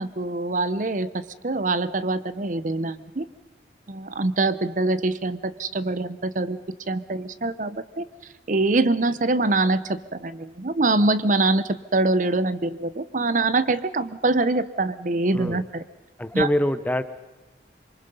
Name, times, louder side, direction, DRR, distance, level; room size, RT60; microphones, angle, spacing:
voice 1, 0.0-3.3 3.9-6.6 6.9-8.0 8.5-15.8 16.3-16.5, right 2 dB, 45° right, 15 dB, 0.8 m, -24 dB
voice 2, 16.2-17.0, left 1 dB, 10° left, 12 dB, 0.7 m, -24 dB
26.5 x 23.5 x 5.4 m, 1.1 s
head